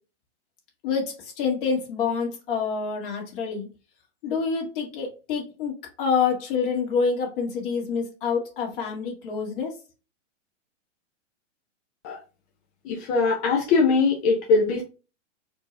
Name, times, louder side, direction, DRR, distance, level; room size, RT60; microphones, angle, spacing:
voice 1, 0.8-3.7 4.2-9.7, left 5 dB, 45° left, 1 dB, 1.9 m, -27 dB
voice 2, 12.8-14.8, left 4 dB, 20° left, -1 dB, 0.5 m, -21 dB
4.4 x 2.7 x 3.3 m, 0.32 s
hypercardioid pair, 145°, 37 cm